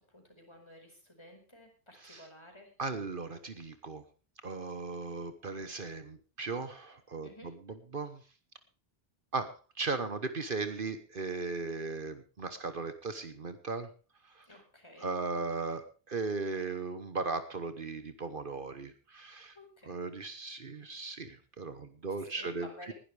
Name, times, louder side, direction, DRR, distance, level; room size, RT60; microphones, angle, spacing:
voice 1, 0.1-2.7 7.2-7.5 14.5-15.1 19.5-20.0 22.3-22.9, left 1 dB, 25° left, 3 dB, 4.9 m, -52 dB
voice 2, 2.8-4.0 4.4-7.5 7.9-8.2 9.3-13.9 14.3-14.5 15.0-19.6 19.9-22.7, right 4 dB, 55° right, 10 dB, 1.3 m, -37 dB
20.5 x 12.0 x 3.4 m, 0.35 s
omnidirectional pair, 1.0 m